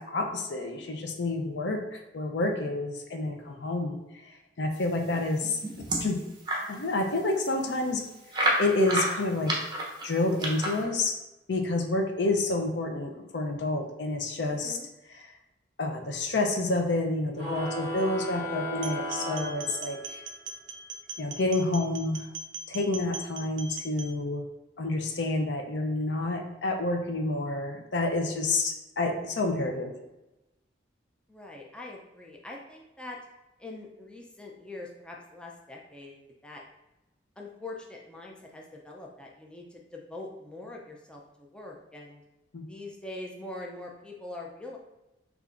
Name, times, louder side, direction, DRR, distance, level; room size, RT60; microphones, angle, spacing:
voice 1, 0.1-4.0 4.6-5.6 6.0-6.2 6.7-8.0 8.6-9.5 10.0-11.1 11.5-14.8 15.8-20.2 21.2-22.2 22.7-24.4 24.8-29.9 42.5-42.6, left 2 dB, 70° left, 3 dB, 0.5 m, -29 dB
sound 1, 5.1-6.7 7.2-7.3 7.5-7.6 8.3-10.8, right 1 dB, 25° right, 0.7 m, -29 dB
sound 2, 17.3-20.3, equal, 30° left, 1.4 m, -35 dB
sound 3, 18.7-24.1, right 4 dB, 80° right, 0.4 m, -41 dB
voice 2, 31.3-33.2 33.6-36.6 37.4-42.2 42.7-44.8, left 2 dB, 5° left, -2 dB, 0.4 m, -43 dB
6.4 x 2.5 x 2.5 m, 0.98 s
head